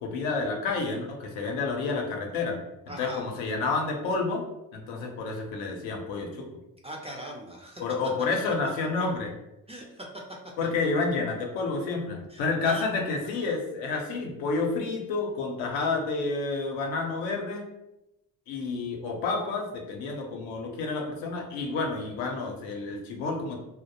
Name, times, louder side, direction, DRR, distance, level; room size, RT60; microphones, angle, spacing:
voice 1, 0.0-2.6 3.0-4.4 4.7-6.5 7.8-9.3 10.6-17.6 18.5-23.6, left 3 dB, 80° left, 2 dB, 0.7 m, -29 dB
voice 2, 2.9-3.3 6.8-7.8 9.7-10.1 12.3-12.9, right 1 dB, 15° right, -1 dB, 0.3 m, -40 dB
2.2 x 2.0 x 2.8 m, 0.90 s
supercardioid pair, 65°, 45 cm